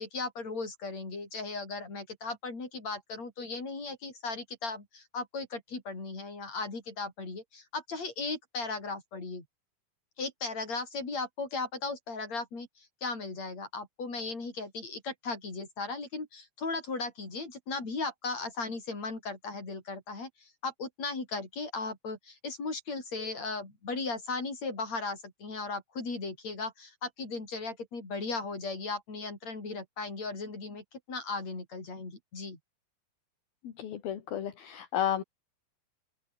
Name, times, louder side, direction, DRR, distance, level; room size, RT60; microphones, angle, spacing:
voice 1, 0.0-9.4 10.2-32.6, left 3 dB, 45° left, 8.4 m, -37 dB
voice 2, 33.6-35.2, left 10 dB, 70° left, 4.2 m, -32 dB
open air
omnidirectional pair, 4.5 m